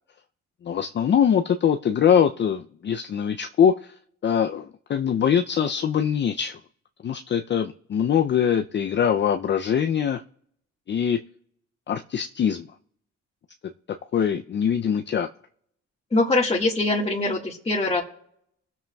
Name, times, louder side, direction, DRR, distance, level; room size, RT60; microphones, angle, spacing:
voice 1, 0.6-3.9 4.2-6.6 7.0-10.2 10.9-11.2 11.9-12.7 14.1-15.3, left 8 dB, 40° left, 6 dB, 0.5 m, -23 dB
voice 2, 16.1-18.0, left 2 dB, 20° left, -4 dB, 1.7 m, -23 dB
21.5 x 7.4 x 2.3 m, 0.67 s
cardioid pair, 90°, 30 cm